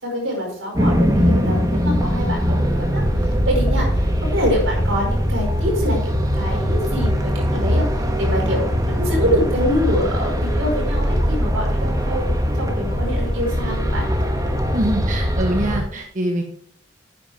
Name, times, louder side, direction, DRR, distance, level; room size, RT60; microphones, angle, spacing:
voice 1, 0.0-7.9 8.2-12.3 12.5-14.1, equal, 80° right, 0 dB, 5.0 m, -25 dB
sound 1, 0.7-15.8, equal, 20° right, 1.4 m, -21 dB
voice 2, 14.7-16.4, right 1 dB, 40° right, 2 dB, 1.2 m, -23 dB
11.0 x 8.9 x 3.5 m, 0.66 s
head